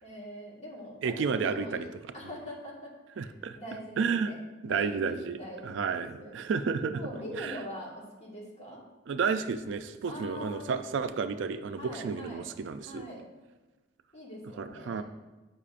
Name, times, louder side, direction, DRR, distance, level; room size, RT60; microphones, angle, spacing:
voice 1, 0.0-1.9 2.1-3.3 3.5-6.4 6.9-8.8 10.0-10.8 11.8-12.5 12.8-13.3 14.1-15.0, equal, 35° left, -4 dB, 1.6 m, -43 dB
voice 2, 1.0-1.9 3.2-3.6 4.0-4.3 4.6-7.0 7.3-7.6 9.1-13.0 14.6-15.0, right 5 dB, 70° right, 10 dB, 0.3 m, -31 dB
8.3 x 5.5 x 2.5 m, 1.2 s
head